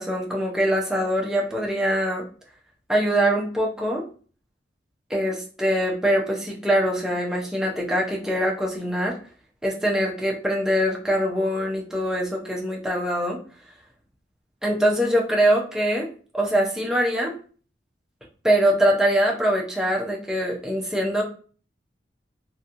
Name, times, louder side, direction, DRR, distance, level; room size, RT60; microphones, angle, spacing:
voice 1, 0.0-2.3 2.9-4.0 5.1-9.2 9.6-13.4 14.6-16.1 16.3-17.3 18.4-21.2, equal, 5° right, -2 dB, 0.5 m, -23 dB
2.8 x 2.6 x 2.4 m, 0.41 s
head